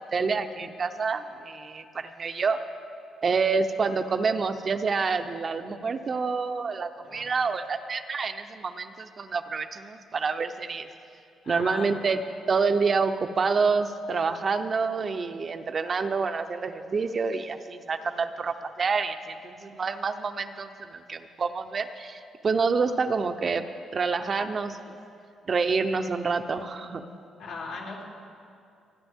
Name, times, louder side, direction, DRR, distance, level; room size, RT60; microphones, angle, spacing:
voice 1, 0.0-2.6 3.2-10.9 11.5-12.2 12.5-23.6 23.9-24.8 25.5-27.0, right 4 dB, 40° right, 8 dB, 0.7 m, -27 dB
voice 2, 7.0-7.4 11.4-11.9 27.4-28.0, left 4 dB, 90° left, -5 dB, 3.2 m, -39 dB
28.5 x 9.7 x 3.6 m, 2.5 s
cardioid pair, 90°, 0 cm